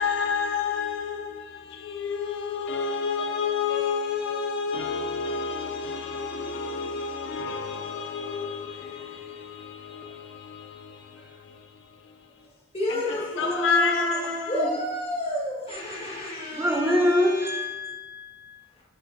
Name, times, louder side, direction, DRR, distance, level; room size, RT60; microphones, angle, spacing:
voice 1, 0.0-12.3 12.9-14.5, left 5 dB, 65° left, 0.4 m, -30 dB
voice 2, 12.7-17.6, left 1 dB, 30° left, 1.6 m, -31 dB
voice 3, 13.3-14.7 16.5-18.6, left 1 dB, 10° right, 0.6 m, -26 dB
8.4 x 4.4 x 2.6 m
head